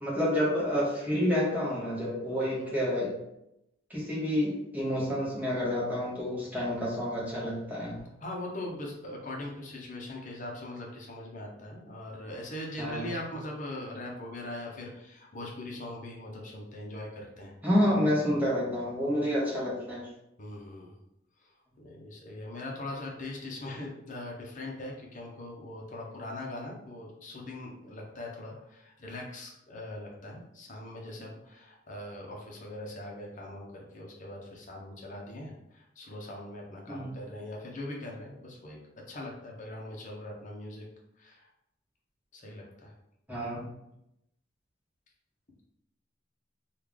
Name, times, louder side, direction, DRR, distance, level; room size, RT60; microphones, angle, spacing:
voice 1, 0.0-3.1 3.9-8.0 12.8-13.2 17.6-20.0 36.9-37.1 43.3-43.7, equal, 10° right, -6 dB, 1.0 m, -29 dB
voice 2, 8.2-17.5 20.4-20.9 21.4-21.5 21.8-38.8 39.1-40.9 41.2-41.5 42.3-42.9, left 1 dB, 40° left, -1 dB, 0.7 m, -41 dB
3.2 x 2.4 x 3.6 m, 0.84 s
head